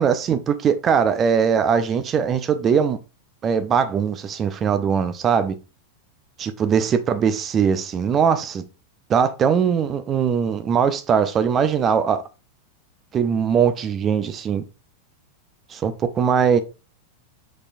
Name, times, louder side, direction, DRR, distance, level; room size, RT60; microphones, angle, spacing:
voice 1, 0.0-3.0 3.4-5.5 6.4-8.6 9.1-12.2 13.1-14.6 15.7-16.6, right 7 dB, 25° right, 0.5 m, -20 dB
5.4 x 3.1 x 2.5 m
figure-of-eight pair, 90°, 0 cm